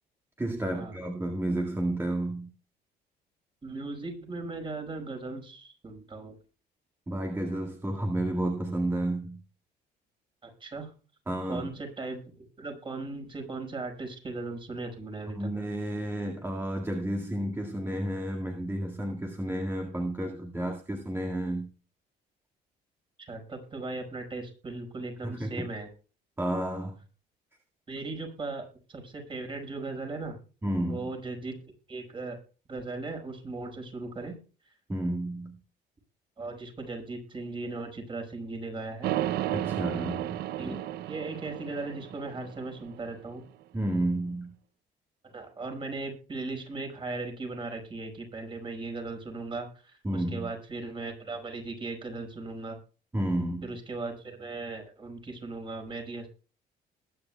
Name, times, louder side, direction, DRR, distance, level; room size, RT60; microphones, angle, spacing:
voice 1, 0.4-2.5 7.1-9.4 11.3-11.7 15.4-21.7 25.2-25.7 26.4-27.0 30.6-31.1 34.9-35.6 39.5-40.8 43.7-44.5 50.0-50.5 53.1-53.7, right 1 dB, 15° right, 1.9 m, -31 dB
voice 2, 3.6-6.4 10.4-10.9 11.5-15.5 23.2-25.9 27.9-30.4 30.9-31.6 31.9-32.4 32.7-34.4 34.6-34.7 36.4-39.1 40.6-40.8 41.1-43.4 45.2-52.8 53.6-56.3, right 3 dB, 30° right, 5.3 m, -38 dB
sound 1, 39.0-43.1, right 13 dB, 70° right, 0.6 m, -33 dB
20.5 x 9.9 x 2.3 m
cardioid pair, 110°, 17 cm